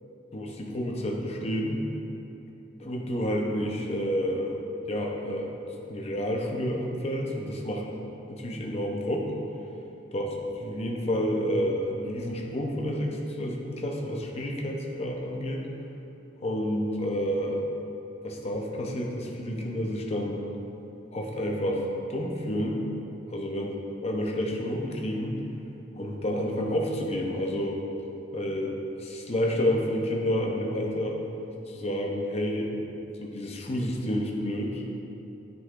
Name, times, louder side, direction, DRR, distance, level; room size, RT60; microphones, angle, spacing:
voice 1, 0.3-1.8 2.8-4.6 4.9-5.5 5.9-7.8 8.3-9.3 10.1-10.3 10.6-15.6 16.4-17.6 18.2-20.5 21.1-22.8 23.3-23.7 24.0-25.4 26.0-27.8 28.3-31.2 31.7-32.7 33.2-34.9, equal, 35° left, 0 dB, 0.7 m, -29 dB
10.5 x 3.9 x 2.4 m, 2.9 s
head